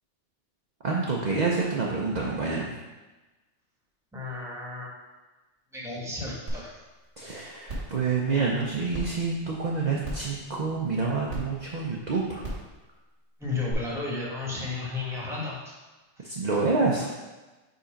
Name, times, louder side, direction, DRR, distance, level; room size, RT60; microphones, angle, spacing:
voice 1, 0.8-2.7 7.2-12.5 16.2-17.1, right 4 dB, 45° right, -3 dB, 0.8 m, -27 dB
voice 2, 4.1-4.9 5.7-6.7 9.8-9.9 13.4-15.8, left 3 dB, 5° right, -4 dB, 1.3 m, -33 dB
sound 1, 6.5-6.6 7.0-7.1 7.7-7.9 8.9-9.0 10.0-10.3 11.3-11.4 12.4-12.6 13.7-13.8, right 1 dB, 90° right, 2.4 m, -33 dB
5.2 x 4.1 x 5.1 m, 1.2 s
omnidirectional pair, 1.2 m